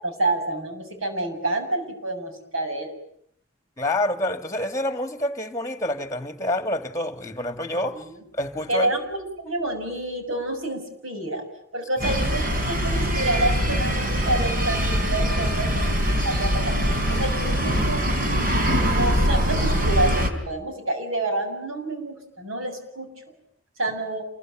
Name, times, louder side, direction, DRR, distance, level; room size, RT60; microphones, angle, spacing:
voice 1, 0.0-2.9 8.0-8.2 8.7-11.4 11.7-12.4 12.7-16.7 17.1-18.0 18.9-23.1 23.8-24.2, right 2 dB, 85° right, 7.1 m, -28 dB
voice 2, 3.8-8.0 8.4-8.9, left 1 dB, 15° left, 2.1 m, -27 dB
sound 1, 12.0-20.3, equal, 45° right, 4.4 m, -23 dB
28.0 x 22.5 x 9.1 m
head